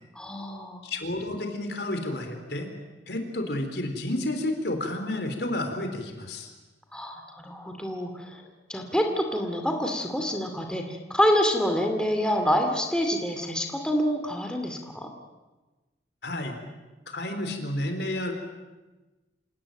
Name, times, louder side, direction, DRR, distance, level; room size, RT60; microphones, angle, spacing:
voice 1, 0.2-0.8 6.9-8.4 8.7-15.1, equal, 5° left, 3 dB, 2.4 m, -27 dB
voice 2, 0.8-2.7 3.1-6.5 16.2-16.6 17.1-18.3, left 1 dB, 65° left, 6 dB, 3.9 m, -31 dB
27.0 x 18.5 x 9.1 m, 1.2 s
head